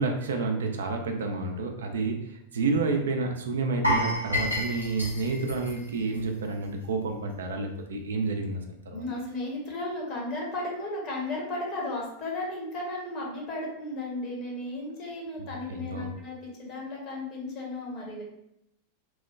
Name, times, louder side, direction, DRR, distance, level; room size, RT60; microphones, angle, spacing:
voice 1, 0.0-9.0 15.4-16.1, right 3 dB, 65° right, 4 dB, 0.3 m, -30 dB
sound 1, 3.8-6.8 7.1-7.3 7.8-7.9, equal, 85° left, 0.7 m, -30 dB
voice 2, 8.9-18.2, left 2 dB, 35° left, -2 dB, 0.9 m, -34 dB
3.0 x 2.1 x 2.3 m, 0.80 s
figure-of-eight pair, 90°, 0 cm